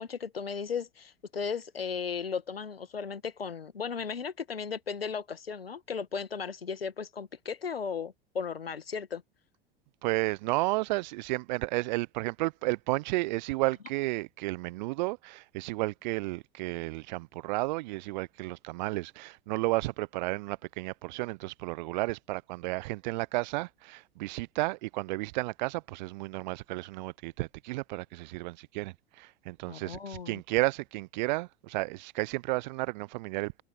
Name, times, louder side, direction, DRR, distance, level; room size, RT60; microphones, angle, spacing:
voice 1, 0.0-9.2 29.7-30.4, left 6 dB, 75° left, 1.8 m, -36 dB
voice 2, 10.0-33.6, right 22 dB, 50° right, 0.9 m, -32 dB
figure-of-eight pair, 85°, 30 cm